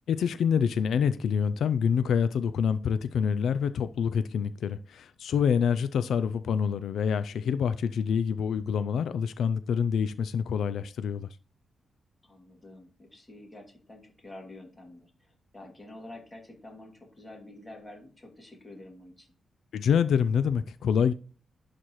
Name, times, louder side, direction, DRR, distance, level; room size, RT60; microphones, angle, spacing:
voice 1, 0.1-11.3 19.7-21.1, left 7 dB, 80° left, 0.3 m, -26 dB
voice 2, 12.2-19.3, left 1 dB, 15° left, 2.4 m, -48 dB
11.0 x 4.1 x 3.0 m
wide cardioid pair, 140°, 0 cm